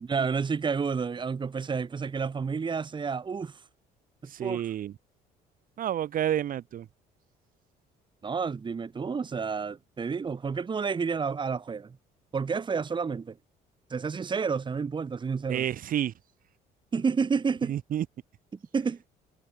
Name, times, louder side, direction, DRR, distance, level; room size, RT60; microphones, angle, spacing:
voice 1, 0.0-3.6 4.2-4.7 8.2-12.0 12.3-13.4 13.9-15.6 16.9-17.8 18.7-19.0, right 5 dB, 30° right, 1.9 m, -30 dB
voice 2, 4.3-4.9 5.8-6.8 15.5-16.1 17.7-18.0, right 11 dB, 55° right, 1.8 m, -29 dB
cardioid pair, 110°, 17 cm